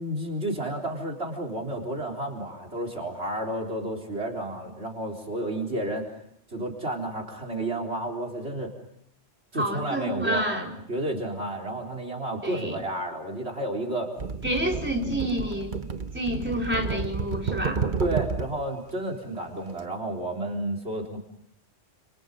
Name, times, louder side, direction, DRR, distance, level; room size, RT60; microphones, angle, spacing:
voice 1, 0.0-6.0 6.5-8.7 9.5-10.4 10.9-14.1 18.0-21.2, right 1 dB, 65° right, 5 dB, 4.2 m, -31 dB
voice 2, 9.5-10.7 12.4-12.8 14.4-15.8 16.1-17.8, equal, 10° right, 0 dB, 4.3 m, -28 dB
sound 1, 14.2-18.6 19.7-19.9, right 5 dB, 45° right, 1.3 m, -31 dB
29.5 x 28.5 x 5.3 m, 0.72 s
omnidirectional pair, 1.2 m